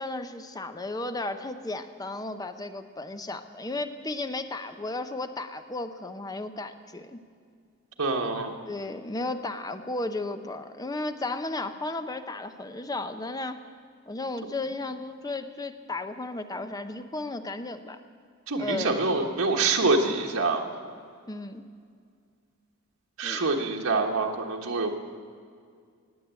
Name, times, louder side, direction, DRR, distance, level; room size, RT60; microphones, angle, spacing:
voice 1, 0.0-7.2 8.6-13.6 14.1-18.0 18.6-19.0 21.3-21.7 23.2-23.4, left 2 dB, 20° left, 9 dB, 0.7 m, -34 dB
voice 2, 8.0-8.5 18.5-20.7 23.2-25.0, right 3 dB, 85° right, 1 dB, 1.3 m, -26 dB
18.5 x 8.0 x 8.2 m, 2.1 s
head